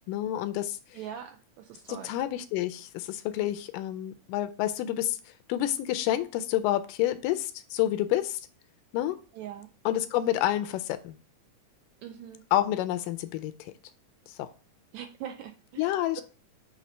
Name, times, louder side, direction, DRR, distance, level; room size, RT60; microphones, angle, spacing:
voice 1, 0.1-0.8 1.9-5.2 5.5-8.4 8.9-9.2 9.9-11.2 12.5-13.7 14.4-14.5 15.8-16.2, left 13 dB, 90° left, 10 dB, 2.2 m, -29 dB
voice 2, 0.9-2.1 9.3-9.7 12.0-12.4 14.9-16.2, right 10 dB, 80° right, 6 dB, 1.7 m, -42 dB
7.2 x 2.8 x 5.3 m, 0.34 s
omnidirectional pair, 3.7 m